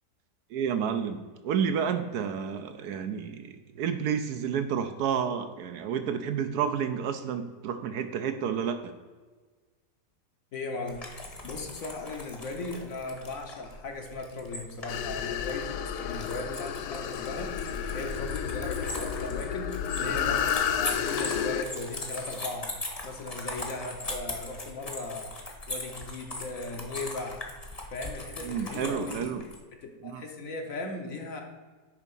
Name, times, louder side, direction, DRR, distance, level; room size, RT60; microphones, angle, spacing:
voice 1, 0.5-8.9 20.0-20.3 28.4-29.4 30.0-30.2, right 7 dB, 70° right, 8 dB, 1.0 m, -30 dB
voice 2, 10.5-11.0 11.4-19.7 20.0-22.7 23.0-25.3 25.7-27.4 27.9-29.3 29.8-31.4, left 2 dB, 55° left, 3 dB, 1.2 m, -37 dB
sound 1, 10.9-29.6, left 2 dB, 25° left, 1.0 m, -40 dB
sound 2, 14.9-21.6, left 8 dB, 80° left, 1.2 m, -31 dB
9.8 x 3.6 x 5.3 m, 1.4 s
omnidirectional pair, 1.8 m